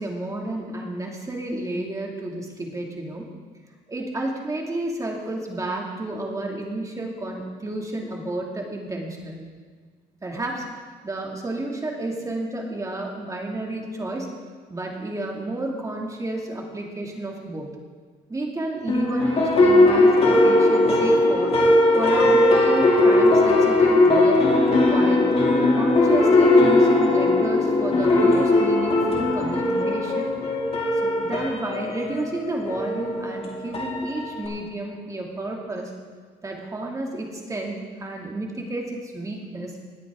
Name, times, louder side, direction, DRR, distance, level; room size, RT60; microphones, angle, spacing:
voice 1, 0.0-3.3 3.9-9.5 10.2-10.7 11.0-14.3 14.7-17.7 18.3-21.6 21.9-24.4 24.8-25.3 25.7-30.4 31.0-35.9 36.4-39.8, right 2 dB, 20° right, 0 dB, 2.3 m, -31 dB
sound 1, 18.9-34.5, left 2 dB, 35° left, 2.5 m, -19 dB
20.0 x 8.3 x 3.7 m, 1.6 s
cardioid pair, 110°, 17 cm